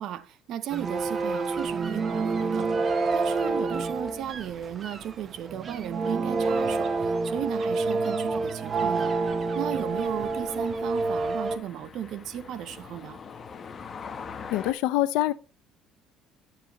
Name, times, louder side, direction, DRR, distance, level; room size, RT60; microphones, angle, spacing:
voice 1, 0.0-2.7 3.1-9.1 9.5-13.2, right 10 dB, 55° right, 0.7 m, -35 dB
sound 1, 0.7-11.6, right 3 dB, 30° right, 0.8 m, -28 dB
sound 2, 8.4-14.7, left 6 dB, 30° left, 0.9 m, -44 dB
voice 2, 14.5-15.3, left 16 dB, 90° left, 0.6 m, -24 dB
10.5 x 7.5 x 3.0 m
cardioid pair, 140°, 0 cm